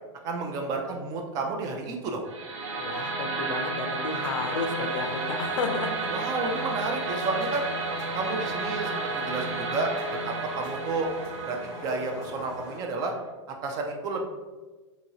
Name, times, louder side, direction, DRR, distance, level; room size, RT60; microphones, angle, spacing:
voice 1, 0.2-2.2 6.1-7.6 8.1-9.9 10.2-11.1 11.4-13.1 13.6-14.2, right 3 dB, 20° right, 2 dB, 0.3 m, -31 dB
sound 1, 2.3-13.3, right 3 dB, 80° right, 0.6 m, -32 dB
voice 2, 2.7-6.1, left 4 dB, 85° left, 5 dB, 0.5 m, -32 dB
sound 2, 4.1-12.8, left 2 dB, 25° left, 0.6 m, -45 dB
2.8 x 2.7 x 2.7 m, 1.3 s
hypercardioid pair, 145°, 16 cm